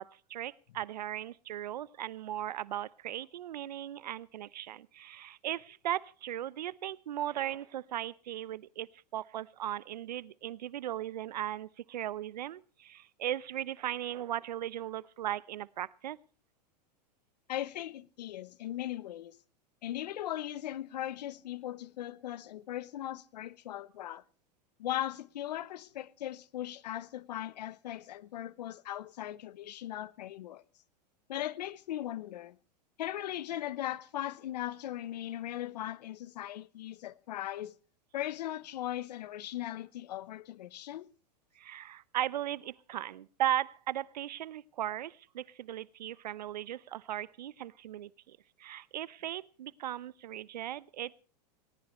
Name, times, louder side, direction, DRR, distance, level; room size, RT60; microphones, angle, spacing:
voice 1, 0.0-8.9 9.1-16.2 41.6-51.2, right 12 dB, 80° right, 0.8 m, -37 dB
voice 2, 17.5-19.4 19.8-24.2 24.8-30.6 31.3-32.6 33.0-37.7 38.1-41.1, left 13 dB, 75° left, 1.0 m, -38 dB
19.0 x 19.0 x 3.1 m
hypercardioid pair, 110°, 21 cm